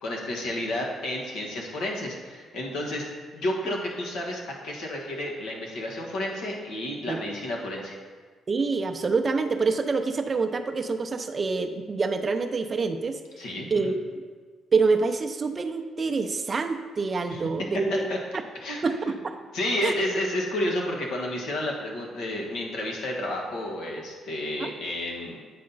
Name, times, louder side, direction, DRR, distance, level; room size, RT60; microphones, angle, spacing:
voice 1, 0.0-3.1 3.3-8.0 13.4-13.9 17.3-17.4 17.9-18.2 18.6-18.8 19.5-25.4, left 1 dB, 80° left, -1 dB, 1.3 m, -31 dB
voice 2, 8.5-13.2 13.7-13.9 14.7-18.1 18.8-19.4 19.8-19.9 24.6-24.7, right 4 dB, 35° right, 7 dB, 0.5 m, -26 dB
8.6 x 4.2 x 3.9 m, 1.5 s
cardioid pair, 90°, 0 cm